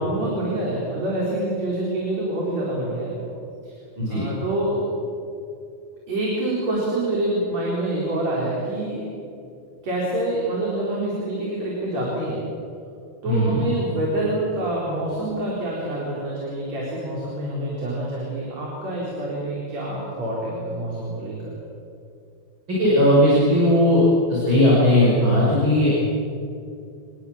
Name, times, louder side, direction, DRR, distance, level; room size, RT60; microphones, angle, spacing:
voice 1, 0.0-3.3 3.6-3.7 4.1-4.9 6.1-9.1 9.8-12.5 13.2-21.5, right 1 dB, 60° right, -4 dB, 5.8 m, -26 dB
voice 2, 13.2-13.6 22.7-24.0 24.3-26.0, left 1 dB, 40° right, -6 dB, 6.5 m, -17 dB
28.5 x 21.0 x 7.4 m, 2.5 s
omnidirectional pair, 3.4 m